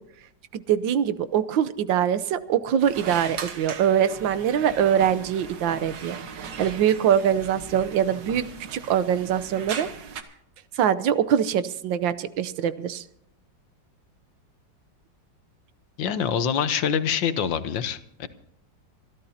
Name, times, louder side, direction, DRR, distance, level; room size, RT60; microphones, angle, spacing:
voice 1, 0.5-9.9 10.7-13.0, right 9 dB, 90° right, 14 dB, 1.5 m, -23 dB
sound 1, 2.8-10.2, right 6 dB, 70° right, 1.9 m, -38 dB
voice 2, 16.0-18.3, left 7 dB, 80° left, 12 dB, 1.7 m, -25 dB
26.0 x 13.0 x 2.8 m, 0.72 s
omnidirectional pair, 2.0 m